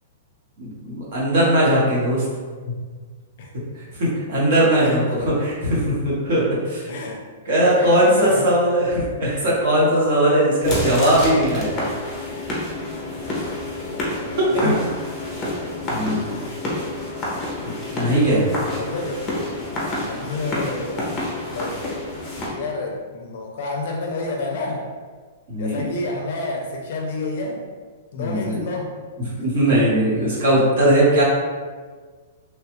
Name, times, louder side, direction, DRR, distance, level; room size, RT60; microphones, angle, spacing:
voice 1, 0.6-2.2 3.7-6.9 7.5-11.8 14.4-14.7 15.9-16.4 17.6-18.5 25.5-25.8 28.2-28.6 29.4-31.2, right 1 dB, 50° right, -6 dB, 1.1 m, -19 dB
voice 2, 4.7-5.4 6.9-8.5 12.3-12.6 13.1-14.8 18.5-19.2 19.6-21.8 22.3-24.9 25.6-27.7 28.1-29.0 29.4-29.5, left 2 dB, 55° left, 0 dB, 0.4 m, -30 dB
sound 1, 10.6-22.5, left 1 dB, 10° left, 0.6 m, -28 dB
3.1 x 2.3 x 3.0 m, 1.5 s
hypercardioid pair, 170°, 0 cm